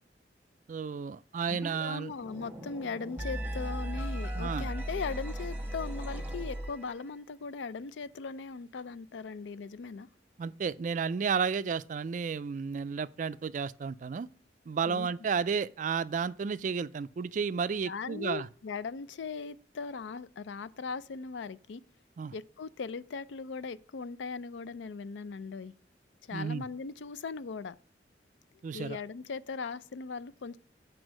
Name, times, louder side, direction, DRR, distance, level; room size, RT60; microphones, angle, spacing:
voice 1, 0.7-2.1 4.3-4.7 10.4-14.3 14.7-18.5 22.2-22.3 26.3-26.7 28.6-29.0, right 6 dB, 45° right, 0.3 m, -32 dB
sound 1, 1.5-1.9 2.1-7.1, equal, 10° right, 1.0 m, -37 dB
voice 2, 1.9-10.1 14.9-15.1 17.9-21.8 22.3-25.7 26.2-27.8 28.7-30.6, left 5 dB, 85° left, 0.4 m, -39 dB
8.0 x 4.5 x 6.3 m
head